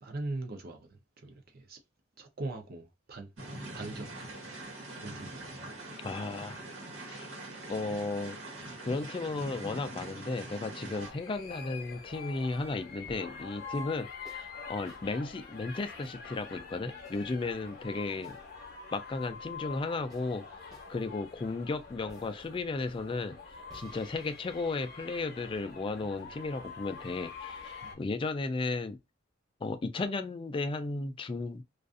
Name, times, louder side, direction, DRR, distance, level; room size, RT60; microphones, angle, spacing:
voice 1, 0.0-1.8 2.2-3.3 3.7-4.3 4.9-5.7 10.8-11.0 26.0-26.2 27.8-28.0, right 2 dB, 50° right, 0.6 m, -41 dB
sound 1, 3.4-11.1, right 1 dB, 90° right, 1.2 m, -43 dB
voice 2, 6.0-6.6 7.1-7.3 7.7-8.4 8.8-18.4 18.9-20.4 20.9-23.4 23.7-29.0 29.6-31.6, left 3 dB, 25° left, 0.3 m, -34 dB
sound 2, 10.9-27.9, left 5 dB, 55° left, 0.7 m, -46 dB
sound 3, 13.0-13.5 14.2-14.5 14.9-15.1 16.0-16.2 17.0-17.4 18.2-18.5 20.1-20.3 20.7-20.9 22.1-22.4 23.7-25.8, equal, 20° right, 0.9 m, -58 dB
2.4 x 2.4 x 2.4 m
head